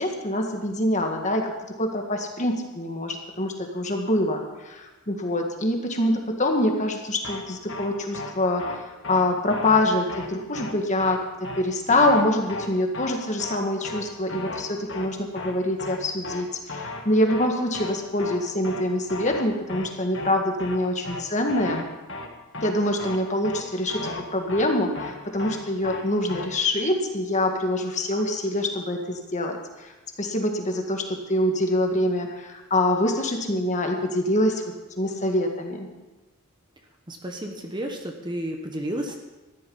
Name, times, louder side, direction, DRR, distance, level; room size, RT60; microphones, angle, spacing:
voice 1, 0.0-1.5 1.8-21.8 22.6-29.9 30.2-34.6 35.0-35.9, left 1 dB, 30° left, 3 dB, 1.7 m, -25 dB
sound 1, 7.2-7.4 7.7-7.9 8.1-8.3 8.6-8.8 9.0-9.2 9.5-9.8 10.1-10.3 10.5-10.7 11.0-11.2 11.4-11.6 11.9-12.2 12.5-12.7 12.9-13.1 13.4-13.6 13.8-14.0 14.3-14.6 14.9-15.1 15.4-15.5 15.8-16.0 16.2-16.4 16.7-17.0 17.3-17.5 17.7-17.9 18.2-18.4 18.6-18.8 19.1-19.4 19.7-19.9 20.1-20.3 20.6-20.8 21.0-21.2 21.5-21.8 22.1-22.3 22.5-22.7 23.0-23.2 23.4-23.6 23.9-24.2 24.5-24.7 25.0-25.1 25.4-25.6 25.8-26.0 26.3-26.5, left 2 dB, 55° left, 1.7 m, -35 dB
voice 2, 37.1-39.2, right 1 dB, 20° right, 3 dB, 1.1 m, -32 dB
14.0 x 12.0 x 5.5 m, 1.2 s
head